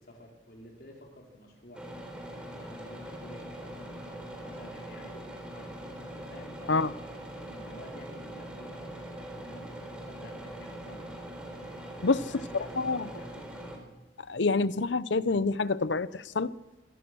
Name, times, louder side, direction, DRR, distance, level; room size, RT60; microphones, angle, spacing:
voice 1, 0.0-1.8 2.6-5.7 6.3-9.8 10.1-11.2 12.0-13.4, left 1 dB, 55° left, 4.8 m, -51 dB
sound 1, 1.7-13.8, right 1 dB, 5° right, 3.7 m, -42 dB
voice 2, 12.8-13.1 14.3-16.5, left 3 dB, 75° left, 0.8 m, -27 dB
24.5 x 17.0 x 6.3 m
head